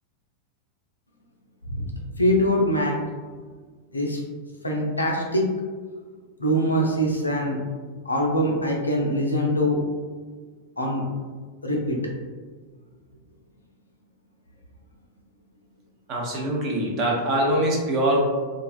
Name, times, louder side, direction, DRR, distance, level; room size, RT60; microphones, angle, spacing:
voice 1, 2.2-3.0 3.9-4.2 4.6-5.5 6.4-7.6 8.1-9.8 10.8-11.0 11.6-12.0, equal, 80° left, -1 dB, 0.4 m, -23 dB
voice 2, 16.1-18.2, right 1 dB, 40° right, -1 dB, 0.6 m, -23 dB
2.4 x 2.2 x 2.4 m, 1.5 s
figure-of-eight pair, 90°, 0 cm